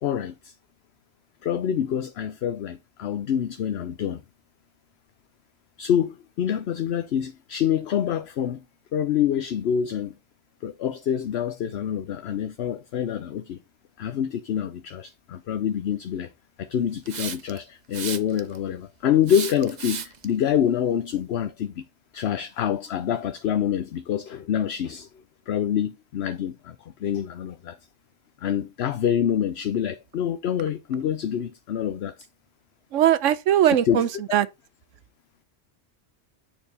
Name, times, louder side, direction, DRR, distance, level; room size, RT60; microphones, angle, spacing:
voice 1, 0.0-0.5 1.4-4.2 5.8-8.6 8.9-10.2 10.6-13.6 14.0-16.3 16.6-21.8 22.1-27.8 28.4-32.1 33.8-34.2, left 9 dB, 65° left, 0.9 m, -26 dB
Hiss, 17.1-17.6 17.9-18.6 19.3-20.2, right 6 dB, 45° right, 0.7 m, -33 dB
voice 2, 32.9-34.5, right 11 dB, 85° right, 1.1 m, -20 dB
9.0 x 4.6 x 4.1 m
omnidirectional pair, 1.3 m